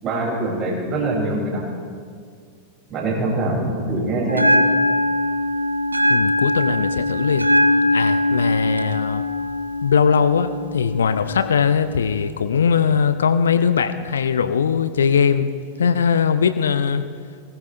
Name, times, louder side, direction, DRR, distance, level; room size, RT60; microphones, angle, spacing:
voice 1, 0.0-1.6 2.9-4.5, right 2 dB, 35° right, -3 dB, 5.9 m, -23 dB
Bell, 4.3-12.3, left 1 dB, 85° right, 0.8 m, -21 dB
voice 2, 6.1-7.5 7.9-9.2 9.8-15.5 15.8-17.0, left 6 dB, 65° left, 12 dB, 0.6 m, -20 dB
23.0 x 19.0 x 3.3 m, 2.1 s
figure-of-eight pair, 90°, 0 cm